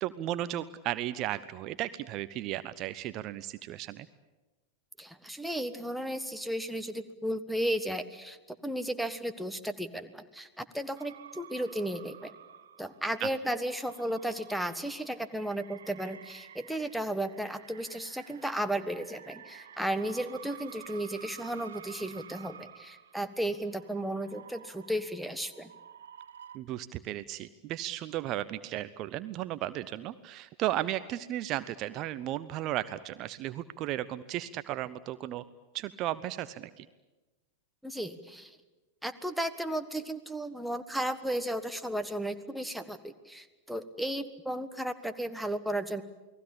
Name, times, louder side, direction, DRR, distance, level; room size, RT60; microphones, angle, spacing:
voice 1, 0.0-4.1 13.2-13.3 26.5-35.4 35.7-36.9, right 13 dB, 35° right, 14 dB, 0.8 m, -35 dB
voice 2, 5.0-12.3 12.8-25.7 37.8-38.6 39.0-46.0, right 1 dB, ahead, 8 dB, 1.5 m, -34 dB
sound 1, 11.0-26.6, right 8 dB, 65° right, 1.3 m, -51 dB
29.0 x 19.5 x 8.8 m, 1.1 s
figure-of-eight pair, 90°, 0 cm